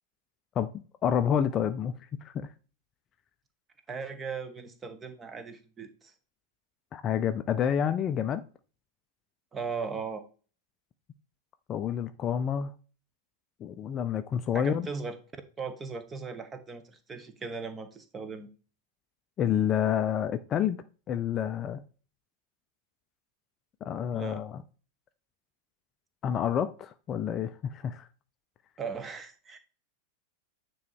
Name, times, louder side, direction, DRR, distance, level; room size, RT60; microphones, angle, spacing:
voice 1, 0.6-2.5 6.9-8.4 11.7-12.7 13.6-14.9 19.4-21.8 23.8-24.6 26.2-28.1, left 9 dB, 30° left, 0.5 m, -29 dB
voice 2, 3.9-6.1 9.5-10.2 14.5-15.2 15.6-18.5 24.1-24.4 28.8-29.6, right 5 dB, 20° right, 1.1 m, -38 dB
9.4 x 3.1 x 4.7 m
figure-of-eight pair, 90°, 0 cm